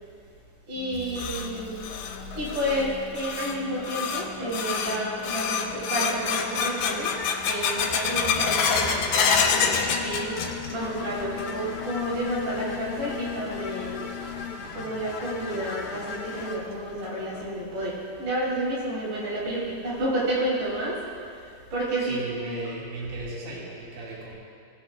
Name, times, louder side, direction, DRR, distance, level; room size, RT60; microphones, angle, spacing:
voice 1, 0.7-1.9 2.3-7.1 7.4-9.1 9.5-14.0 14.7-21.0 21.3-22.6, right 1 dB, 75° right, -7 dB, 4.2 m, -30 dB
sound 1, 0.8-10.9 11.2-11.8 12.2-12.3 13.0-13.1 14.7-14.8 15.3-15.4 15.8-15.9 16.4-16.5 17.0-17.4, left 6 dB, 80° left, 2.1 m, -28 dB
sound 2, 0.9-5.1 6.4-17.6 19.1-19.2, left 7 dB, 40° left, 1.5 m, -41 dB
sound 3, 6.0-16.6, left 4 dB, 60° left, 1.8 m, -39 dB
voice 2, 22.0-24.3, right 2 dB, 45° right, -6 dB, 2.1 m, -36 dB
18.5 x 8.1 x 2.2 m, 2.3 s
omnidirectional pair, 3.5 m